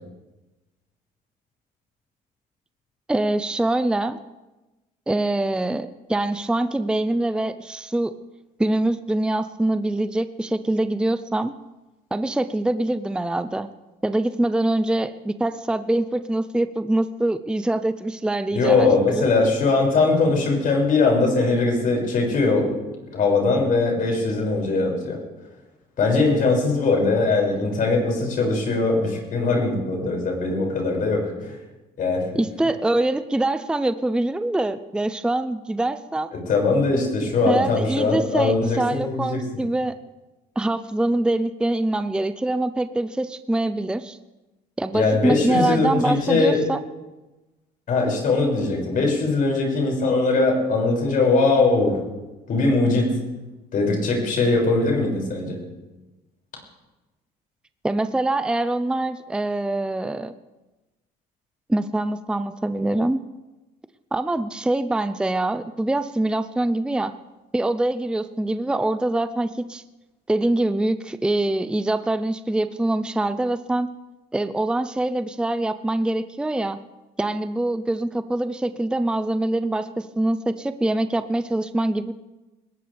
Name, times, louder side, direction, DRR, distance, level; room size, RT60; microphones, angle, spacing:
voice 1, 3.1-4.2 5.1-8.1 8.6-11.5 12.1-13.7 14.0-19.2 32.4-36.3 37.5-40.0 40.6-44.2 44.8-46.8 57.8-60.3 61.7-63.2 64.1-67.1 67.5-69.8 70.3-73.9 74.3-76.8 77.2-82.1, right 2 dB, 5° right, 11 dB, 0.6 m, -24 dB
voice 2, 18.5-22.8 23.1-25.2 26.0-31.6 32.0-32.3 36.5-39.4 44.9-46.6 47.9-52.0 52.5-53.2 53.7-55.6, left 3 dB, 55° left, 0 dB, 6.3 m, -21 dB
20.5 x 18.5 x 3.5 m, 1.1 s
cardioid pair, 110°, 17 cm